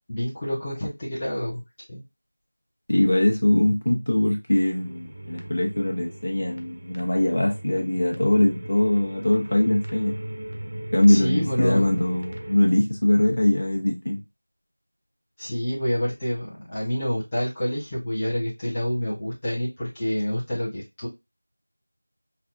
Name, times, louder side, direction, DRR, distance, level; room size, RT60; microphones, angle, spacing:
voice 1, 0.1-1.6 1.9-2.0 11.1-11.9 15.4-21.1, equal, 15° left, -10 dB, 1.1 m, -28 dB
voice 2, 2.9-10.1 10.9-14.2, left 1 dB, 50° left, 0 dB, 1.2 m, -22 dB
sound 1, 4.5-12.6, right 1 dB, 45° right, 0.8 m, -38 dB
5.6 x 2.5 x 2.6 m, 0.23 s
figure-of-eight pair, 175°, 0 cm